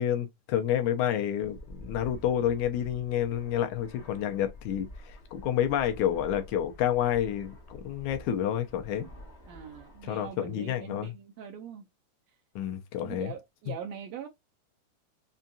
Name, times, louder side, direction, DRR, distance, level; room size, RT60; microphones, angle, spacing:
voice 1, 0.0-9.1 10.0-11.1 12.6-13.3 13.7-13.8, left 10 dB, 75° left, 2.1 m, -29 dB
Fixed-wing aircraft airplane, 1.4-10.3, equal, 60° left, 0.6 m, -48 dB
voice 2, 9.5-11.9 13.0-14.3, right 8 dB, 75° right, 1.6 m, -42 dB
5.5 x 2.4 x 2.6 m
omnidirectional pair, 3.6 m